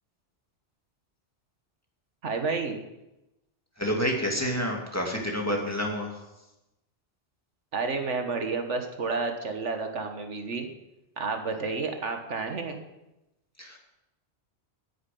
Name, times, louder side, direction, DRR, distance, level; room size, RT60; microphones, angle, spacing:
voice 1, 2.2-2.8 7.7-10.7 11.2-12.8, right 4 dB, 85° right, 5 dB, 1.7 m, -30 dB
voice 2, 3.8-6.2 13.6-13.8, equal, 15° left, 0 dB, 2.2 m, -29 dB
9.6 x 9.4 x 8.4 m, 0.95 s
omnidirectional pair, 1.2 m